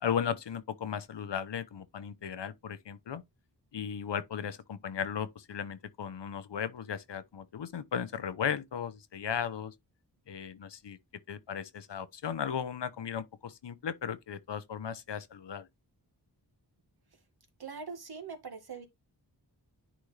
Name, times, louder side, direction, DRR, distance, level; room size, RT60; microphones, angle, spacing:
voice 1, 0.0-3.2 3.7-9.7 10.3-11.0 11.3-15.7, left 8 dB, 80° left, 0.9 m, -36 dB
voice 2, 17.6-18.9, right 5 dB, 60° right, 2.0 m, -42 dB
10.0 x 4.3 x 3.3 m
wide cardioid pair, 105°, 42 cm